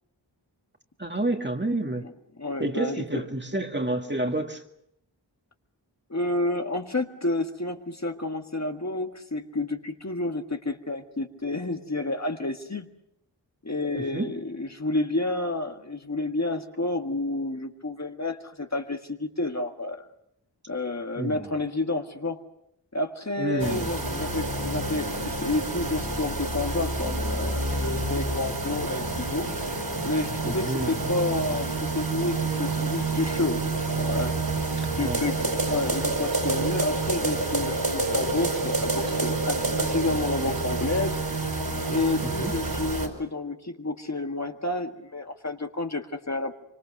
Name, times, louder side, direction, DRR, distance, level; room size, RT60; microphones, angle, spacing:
voice 1, 1.0-2.0 2.6-4.6 13.9-14.3 21.2-21.5 23.4-23.9 30.4-31.0 34.8-35.2 42.2-42.5, right 2 dB, 25° right, 4 dB, 2.2 m, -29 dB
voice 2, 2.4-3.2 6.1-12.9 13.6-20.0 20.7-22.4 22.9-29.5 30.0-34.3 35.0-41.2 41.9-46.6, left 2 dB, 40° left, 5 dB, 1.7 m, -30 dB
sound 1, 23.6-43.1, right 2 dB, 60° right, 5.4 m, -28 dB
25.0 x 25.0 x 6.6 m, 0.77 s
wide cardioid pair, 45°, 43 cm